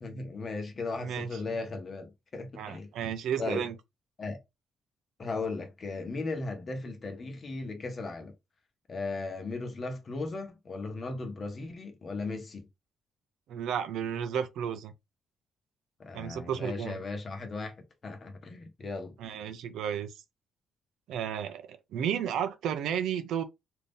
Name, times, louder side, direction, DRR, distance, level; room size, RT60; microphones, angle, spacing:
voice 1, 0.0-2.9 3.4-3.7 4.2-4.4 5.2-8.3 8.9-12.7 16.0-17.7 18.0-19.1, left 3 dB, 40° left, 1.0 m, -37 dB
voice 2, 1.0-1.4 2.6-3.8 13.5-14.9 16.1-17.0 19.2-20.1 21.1-23.4, right 8 dB, 80° right, 0.5 m, -33 dB
2.6 x 2.4 x 3.6 m
cardioid pair, 90°, 0 cm